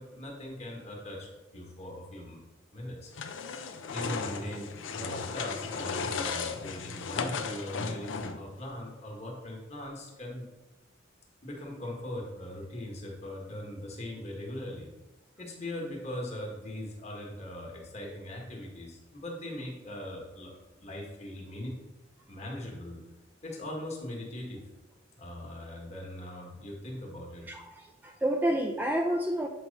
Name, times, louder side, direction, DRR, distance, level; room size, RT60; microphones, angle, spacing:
voice 1, 0.0-2.4 2.7-3.1 3.9-10.5 11.4-14.9 15.4-21.8 22.3-23.0 23.4-24.6 25.2-27.5, left 1 dB, 35° left, -2 dB, 1.5 m, -40 dB
sound 1, 3.1-8.5, left 5 dB, 80° left, 0.6 m, -35 dB
voice 2, 27.5-29.5, right 1 dB, 10° right, 2 dB, 0.3 m, -29 dB
7.7 x 3.1 x 5.2 m, 1.1 s
head